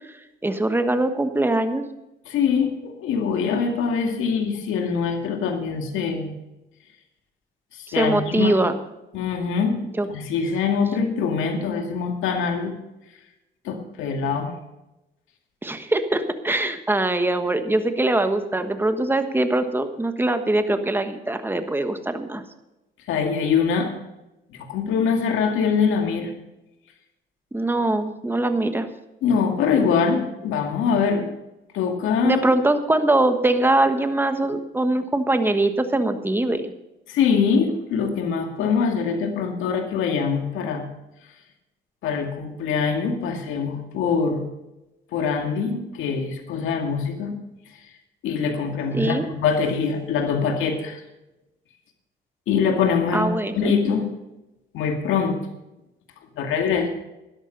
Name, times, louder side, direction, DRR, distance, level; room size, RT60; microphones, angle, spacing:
voice 1, 0.4-1.8 7.9-8.8 10.0-10.1 15.6-22.4 27.5-28.9 32.2-36.7 48.9-49.2 53.1-53.7, right 2 dB, 10° right, 8 dB, 1.3 m, -22 dB
voice 2, 2.3-6.3 7.7-8.6 9.1-9.8 10.1-12.7 13.6-14.5 23.1-23.9 24.5-26.3 29.2-31.3 31.7-32.5 37.1-40.9 42.0-44.5 45.1-47.3 48.2-51.0 52.5-54.1 54.7-55.4 56.4-56.9, left 6 dB, 85° left, 4 dB, 2.2 m, -23 dB
12.5 x 11.5 x 5.4 m, 0.97 s
cardioid pair, 90°, 20 cm